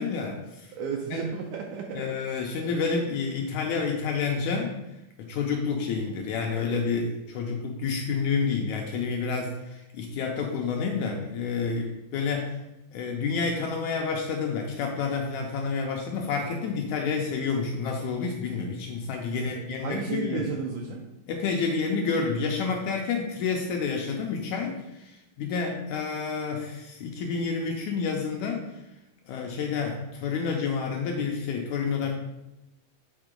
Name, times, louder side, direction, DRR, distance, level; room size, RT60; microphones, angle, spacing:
voice 1, 0.0-0.7 1.1-1.2 1.9-4.7 5.2-12.6 12.9-20.5 21.3-28.7 29.3-32.1, left 5 dB, 80° left, 1 dB, 1.8 m, -29 dB
voice 2, 0.7-2.2 19.4-21.0 32.0-32.1, right 5 dB, 75° right, 1 dB, 1.8 m, -33 dB
8.0 x 3.7 x 5.0 m, 0.93 s
omnidirectional pair, 4.0 m